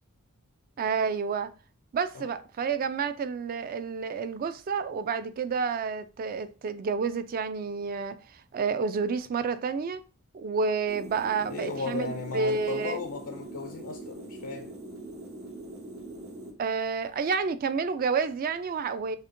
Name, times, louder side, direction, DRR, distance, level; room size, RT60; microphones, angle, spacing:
voice 1, 0.8-1.5 1.9-8.2 8.5-10.0 10.3-13.0 16.6-19.2, right 5 dB, 40° right, 0.3 m, -29 dB
sound 1, 10.9-16.5, right 1 dB, 65° right, 1.8 m, -42 dB
voice 2, 11.5-14.7, left 4 dB, 65° left, 0.4 m, -35 dB
6.3 x 2.1 x 2.5 m
head